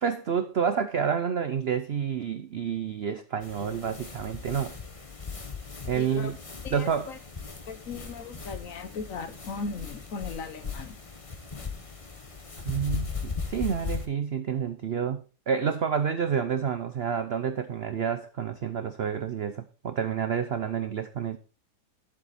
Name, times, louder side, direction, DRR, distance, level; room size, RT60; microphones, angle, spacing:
voice 1, 0.0-4.7 5.9-6.4 6.7-7.1 12.6-21.4, right 7 dB, 65° right, 0.6 m, -29 dB
sound 1, 3.4-14.1, left 5 dB, 25° left, 0.9 m, -38 dB
voice 2, 5.9-6.3 6.6-7.2 7.7-11.0, left 4 dB, 55° left, 1.2 m, -38 dB
11.0 x 7.5 x 4.1 m
omnidirectional pair, 1.8 m